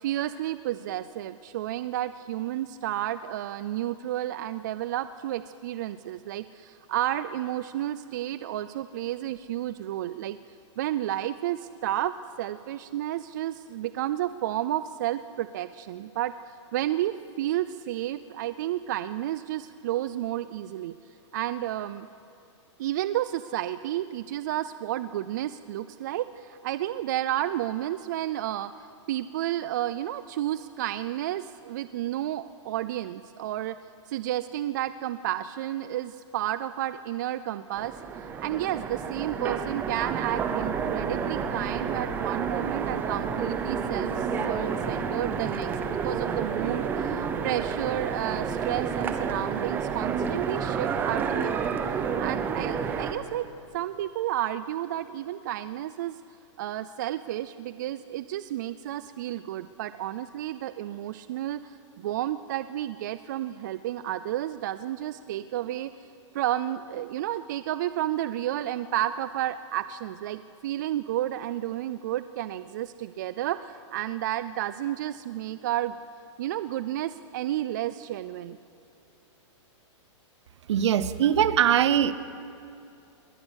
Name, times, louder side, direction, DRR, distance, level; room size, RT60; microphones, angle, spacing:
voice 1, 0.0-10.4 10.8-16.3 16.7-20.9 21.3-22.1 22.8-33.8 34.1-38.0 38.4-51.7 52.2-53.5 53.7-56.2 56.6-65.9 66.3-76.0 76.4-78.6, right 13 dB, 40° right, 14 dB, 0.4 m, -31 dB
Train, 37.7-53.1, right 6 dB, 10° right, 0.7 m, -30 dB
voice 2, 80.7-82.1, right 10 dB, 65° right, 15 dB, 0.9 m, -21 dB
21.0 x 20.0 x 6.3 m, 2.6 s
hypercardioid pair, 170°, 16 cm